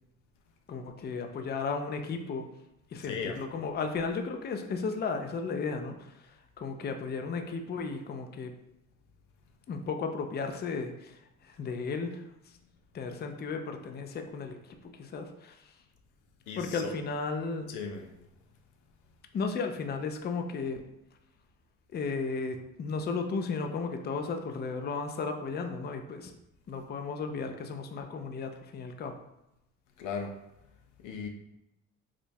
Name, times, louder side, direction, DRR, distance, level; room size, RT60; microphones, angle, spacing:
voice 1, 0.7-2.5 2.9-8.5 9.7-12.2 12.9-14.6 15.0-15.6 16.6-17.7 19.3-20.8 21.9-26.3 26.7-29.1, left 4 dB, 35° left, 5 dB, 0.4 m, -34 dB
voice 2, 3.0-3.4 16.5-16.9 17.7-18.1 30.0-30.3 31.0-31.3, left 5 dB, 90° left, 3 dB, 0.6 m, -37 dB
5.0 x 2.2 x 2.7 m, 0.88 s
cardioid pair, 90°, 30 cm